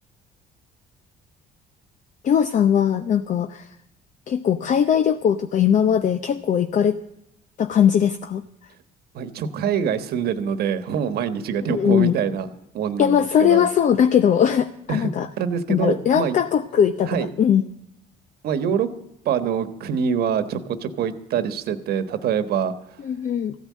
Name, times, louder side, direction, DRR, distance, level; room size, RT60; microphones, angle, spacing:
voice 1, 2.2-3.7 4.3-7.0 7.6-8.4 11.7-12.2 13.0-15.3 15.7-17.6 23.0-23.5, left 8 dB, 45° left, 10 dB, 0.7 m, -20 dB
voice 2, 9.1-12.5 12.7-13.6 14.9-15.1 15.4-16.4 17.0-17.3 18.4-18.9 19.2-23.0, right 7 dB, 70° right, 12 dB, 1.3 m, -25 dB
15.0 x 9.5 x 7.5 m, 0.83 s
cardioid pair, 110°, 17 cm